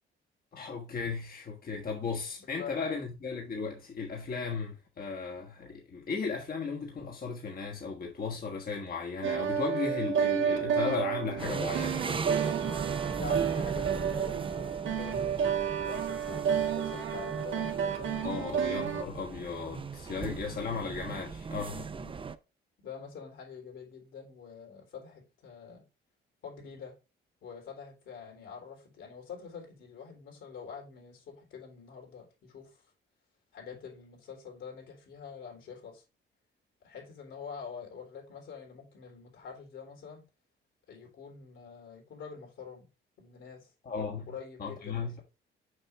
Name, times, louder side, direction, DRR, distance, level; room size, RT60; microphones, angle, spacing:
voice 1, 0.5-12.0 18.2-21.9 43.8-44.3 44.6-45.2, left 5 dB, 45° left, 1.4 m, -35 dB
voice 2, 2.4-3.0 13.2-15.5 15.8-16.5 16.8-18.1 21.9-22.2 22.8-25.8 26.4-27.0 27.4-32.8 33.5-36.0 36.8-40.2 40.9-42.9 43.2-43.7 44.3-45.2, left 6 dB, 75° left, 3.6 m, -46 dB
sound 1, 9.2-19.0, right 8 dB, 75° right, 1.4 m, -31 dB
sound 2, 11.4-22.4, right 5 dB, 25° right, 0.6 m, -38 dB
6.6 x 5.4 x 3.3 m
cardioid pair, 90°, 20 cm